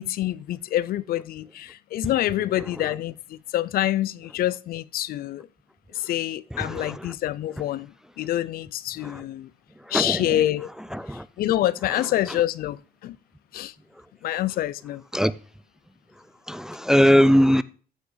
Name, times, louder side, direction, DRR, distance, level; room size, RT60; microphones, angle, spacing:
voice 1, 0.0-5.5 5.9-7.9 8.2-9.5 9.9-10.7 11.4-13.2 13.5-13.7 14.2-15.0, left 13 dB, 60° left, 0.5 m, -26 dB
voice 2, 6.5-7.1 9.0-9.3 9.9-10.4 10.9-11.3 15.1-15.3 16.5-17.6, equal, 5° right, 0.4 m, -21 dB
14.5 x 5.9 x 3.9 m
cardioid pair, 110°, 17 cm